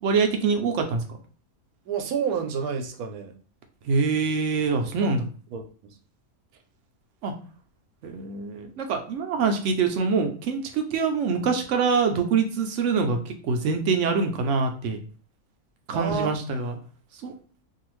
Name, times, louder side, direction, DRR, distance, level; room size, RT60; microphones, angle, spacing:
voice 1, 0.0-1.0 3.9-5.2 7.2-7.3 8.0-15.0 15.9-16.8 17.2-17.3, right 5 dB, 65° right, 5 dB, 0.8 m, -24 dB
voice 2, 1.9-3.3 5.0-5.1 5.5-5.9 15.9-16.3, right 7 dB, 85° right, 4 dB, 1.1 m, -29 dB
2.6 x 2.4 x 3.0 m, 0.41 s
omnidirectional pair, 1.5 m